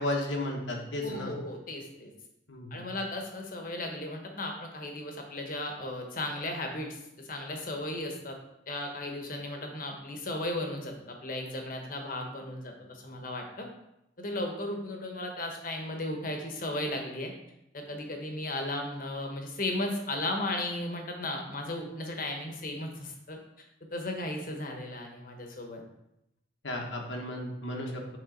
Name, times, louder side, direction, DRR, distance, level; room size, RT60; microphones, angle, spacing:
voice 1, 0.0-1.3 2.5-2.9 26.6-28.2, left 1 dB, 90° left, 1 dB, 1.2 m, -34 dB
voice 2, 1.0-2.1 2.7-8.4 8.7-13.7 14.2-17.3 17.7-23.4 23.9-25.8, left 1 dB, 50° left, 3 dB, 1.1 m, -35 dB
8.0 x 3.8 x 3.8 m, 0.84 s
head